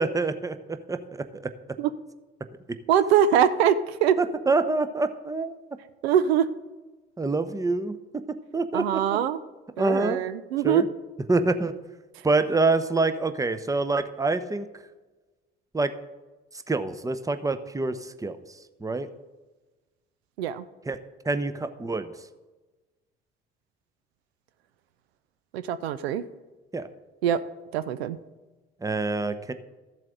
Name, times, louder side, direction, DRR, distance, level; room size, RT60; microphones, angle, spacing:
voice 1, 0.0-1.5 2.7-2.8 4.2-5.6 7.2-9.0 9.8-10.2 10.6-10.9 11.3-11.7 12.2-14.7 15.7-15.9 16.7-18.4 18.8-19.1 20.9-21.0 21.2-22.1 26.7-26.9 28.8-29.5, right 3 dB, 10° right, 11 dB, 0.7 m, -26 dB
voice 2, 2.9-4.2 6.0-6.5 8.7-9.4 9.8-10.8 20.4-20.7 25.5-26.2 27.2-27.4 27.7-28.2, right 9 dB, 80° right, 14 dB, 0.5 m, -23 dB
14.0 x 7.5 x 3.8 m, 1.2 s
figure-of-eight pair, 45°, 31 cm